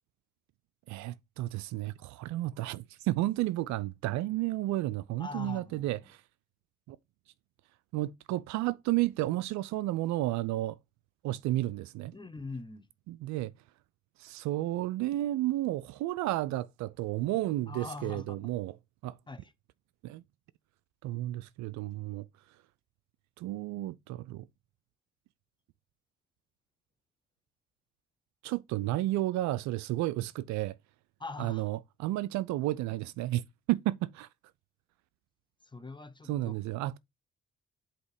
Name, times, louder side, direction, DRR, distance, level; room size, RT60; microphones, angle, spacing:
voice 1, 0.9-6.2 6.9-7.0 7.9-10.8 11.2-12.1 13.1-13.5 14.2-18.7 19.0-19.2 20.0-20.2 21.0-22.3 23.4-24.4 28.4-30.8 31.4-33.4 33.7-34.3 36.3-37.0, right 16 dB, 65° right, 0.4 m, -32 dB
voice 2, 5.2-6.1 12.1-12.9 17.7-18.6 19.3-19.5 31.2-31.7 35.6-36.6, left 3 dB, 15° left, 1.0 m, -43 dB
8.0 x 2.9 x 4.8 m
hypercardioid pair, 45°, 31 cm